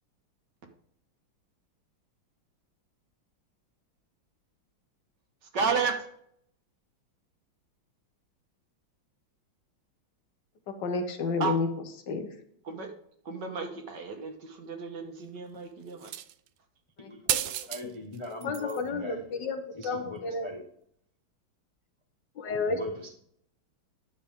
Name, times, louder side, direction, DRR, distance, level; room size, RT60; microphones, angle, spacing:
voice 1, 5.4-6.1 11.4-11.6 12.6-12.9 13.3-16.1, right 5 dB, 60° right, 4 dB, 1.7 m, -32 dB
voice 2, 10.7-11.7 12.1-12.3 17.0-17.4 18.4-20.5 22.4-22.8, left 4 dB, 65° left, 7 dB, 1.6 m, -31 dB
sound 1, 16.0-16.5 17.3-17.8 18.1-18.8 19.8-19.9, right 12 dB, 85° right, 0.8 m, -32 dB
voice 3, 17.0-19.4 19.7-20.6 22.4-23.1, left 2 dB, 25° left, 2 dB, 0.7 m, -40 dB
10.0 x 6.8 x 3.7 m, 0.68 s
omnidirectional pair, 2.2 m